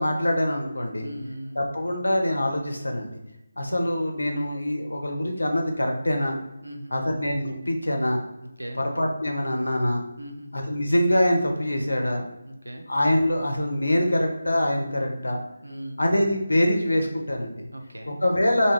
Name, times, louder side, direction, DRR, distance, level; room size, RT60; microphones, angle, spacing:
voice 1, 0.0-1.1 1.6-3.2 3.6-6.4 6.9-8.2 8.8-10.0 10.5-12.3 12.9-15.4 16.0-17.6 18.1-18.7, left 1 dB, 80° left, 3 dB, 0.6 m, -24 dB
voice 2, 1.0-1.6 6.6-7.1 8.6-8.8 10.2-10.6 12.4-12.9 15.6-16.0 17.7-18.2, equal, 90° right, 4 dB, 0.5 m, -38 dB
2.6 x 2.2 x 3.2 m, 0.93 s
figure-of-eight pair, 155°, 0 cm